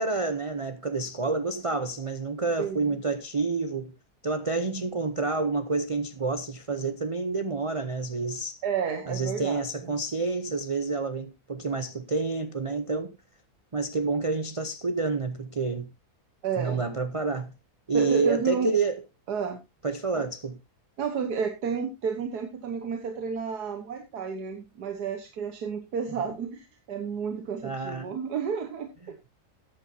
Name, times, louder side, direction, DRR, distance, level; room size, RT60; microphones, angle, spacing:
voice 1, 0.0-3.9 4.2-8.6 9.1-13.2 13.7-15.9 16.6-17.5 17.9-19.0 19.8-20.6 27.6-28.2, right 3 dB, 50° right, 0.4 m, -28 dB
voice 2, 2.6-3.0 8.6-9.9 16.4-16.8 17.9-18.7 19.3-19.6 20.2-20.3 21.0-29.2, right 6 dB, 85° right, 1.8 m, -31 dB
14.0 x 9.8 x 2.7 m
omnidirectional pair, 1.7 m